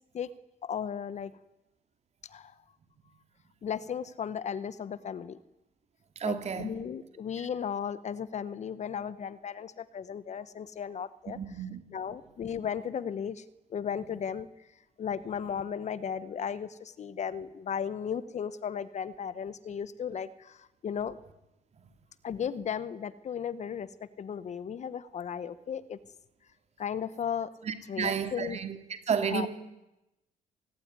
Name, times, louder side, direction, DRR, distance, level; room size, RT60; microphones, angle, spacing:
voice 1, 0.6-1.3 2.2-2.5 3.6-5.4 6.2-11.4 11.9-13.4 13.7-14.5 15.0-21.2 22.2-26.0 26.8-27.5 27.9-28.6 29.2-29.5, left 7 dB, 45° left, 15 dB, 1.2 m, -35 dB
voice 2, 6.1-6.8 7.4-7.5 11.3-11.8 27.6-28.8 29.1-29.5, right 7 dB, 40° right, 8 dB, 3.2 m, -31 dB
27.5 x 19.5 x 9.9 m, 0.95 s
cardioid pair, 110°, 17 cm